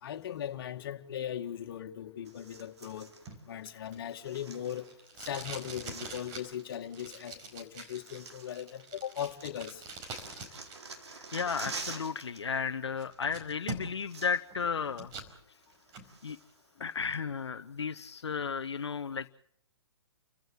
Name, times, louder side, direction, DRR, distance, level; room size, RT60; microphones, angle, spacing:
voice 1, 0.0-3.1 3.5-4.9 5.2-9.8, left 10 dB, 55° left, 2.2 m, -39 dB
sound 1, 2.3-3.3 4.1-5.2 5.4-6.7 7.5-7.6 7.9-9.1 9.4-12.4 12.7-12.9 13.6-13.7 13.9-14.7 15.0-15.1 15.6-16.6 17.1-17.2, right 4 dB, 80° right, 4.3 m, -47 dB
Packing tape duct tape, 3.3-10.8 11.1-12.1 12.5-12.6 13.0-14.1 14.5-15.3 15.7-16.1, right 3 dB, 30° right, 4.8 m, -45 dB
voice 2, 11.2-15.1 16.2-16.4 16.8-19.3, left 6 dB, 80° left, 0.9 m, -34 dB
30.0 x 15.5 x 7.9 m
hypercardioid pair, 135°, 14 cm